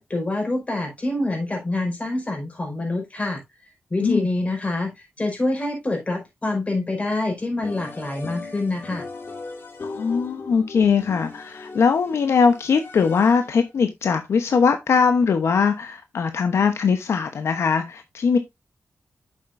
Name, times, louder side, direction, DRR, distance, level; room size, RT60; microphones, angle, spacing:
voice 1, 0.0-3.4 3.9-9.1, left 2 dB, 30° left, 4.5 m, -26 dB
sound 1, 7.6-13.7, left 3 dB, 55° left, 2.3 m, -38 dB
voice 2, 9.8-18.4, left 5 dB, 85° left, 0.9 m, -21 dB
8.9 x 7.3 x 2.6 m
wide cardioid pair, 100°, 5 cm